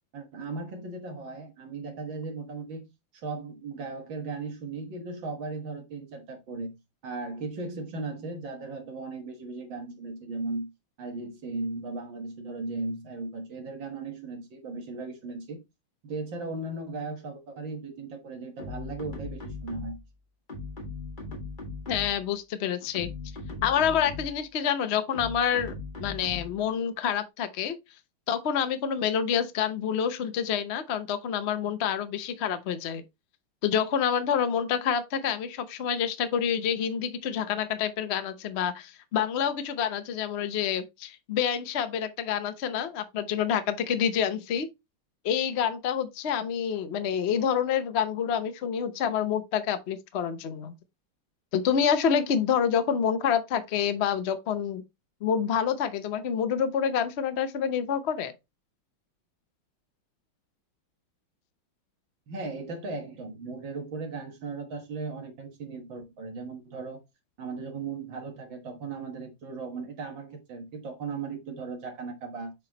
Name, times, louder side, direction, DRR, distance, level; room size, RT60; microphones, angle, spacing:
voice 1, 0.1-2.9 3.2-6.8 7.0-10.7 11.0-15.6 16.0-20.0 62.3-67.0 67.4-72.5, right 3 dB, 65° right, 2.1 m, -37 dB
sound 1, 18.6-20.1 20.5-22.3 22.8-24.5 25.1-26.7, left 3 dB, 25° left, 1.6 m, -39 dB
voice 2, 21.9-23.1 23.6-25.7 26.0-27.8 28.3-33.0 33.6-44.7 45.2-50.7 51.5-54.8 55.2-58.3, left 8 dB, 85° left, 0.5 m, -27 dB
7.2 x 4.6 x 2.9 m
omnidirectional pair, 2.3 m